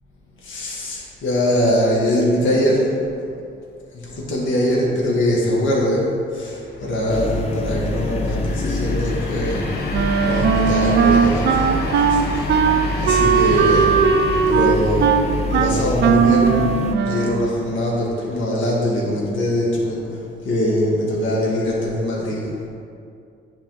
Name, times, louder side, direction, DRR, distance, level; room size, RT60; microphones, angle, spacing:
voice 1, 0.4-2.9 3.9-6.1 6.3-9.7 10.2-11.8 12.1-12.5 13.0-14.0 14.5-15.1 15.5-20.2 20.4-22.6, left 1 dB, 70° left, -4 dB, 1.6 m, -22 dB
sound 1, 6.5-18.4, left 2 dB, 55° left, 1.0 m, -33 dB
sound 2, 7.1-17.0, left 2 dB, 30° left, 0.5 m, -26 dB
Wind instrument woodwind instrument, 9.9-17.5, right 7 dB, 60° right, 0.4 m, -18 dB
9.8 x 3.7 x 3.8 m, 2.4 s
cardioid pair, 90°, 20 cm